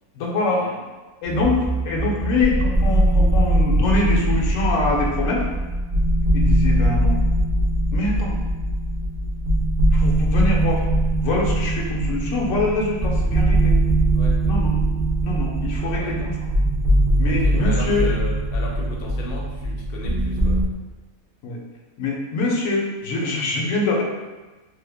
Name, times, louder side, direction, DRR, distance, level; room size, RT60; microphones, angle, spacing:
voice 1, 0.2-0.6 1.2-5.4 6.3-7.2 7.9-8.4 9.9-10.8 11.2-13.7 14.4-14.7 15.2-16.3 17.2-18.1 21.4-21.6 22.0-24.0, left 2 dB, 70° left, -2 dB, 1.0 m, -24 dB
sound 1, 1.2-20.6, right 1 dB, 50° right, 0.8 m, -21 dB
voice 2, 15.8-16.2 17.2-20.6, left 2 dB, 90° left, -2 dB, 1.1 m, -35 dB
3.2 x 2.1 x 3.4 m, 1.2 s
omnidirectional pair, 1.5 m